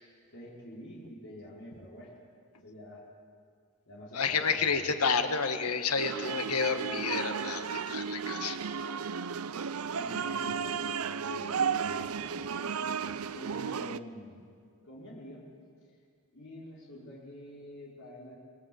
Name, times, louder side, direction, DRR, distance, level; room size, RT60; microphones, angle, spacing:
voice 1, 0.3-2.1 2.6-3.0 3.9-4.9 9.9-12.4 13.3-14.4 14.8-15.4 16.3-18.3, left 1 dB, 60° left, -4 dB, 5.2 m, -47 dB
voice 2, 4.1-8.6, left 5 dB, 90° left, 8 dB, 1.7 m, -30 dB
sound 1, 6.0-14.0, right 6 dB, 75° right, 0.6 m, -34 dB
26.5 x 19.5 x 7.9 m, 2.2 s
head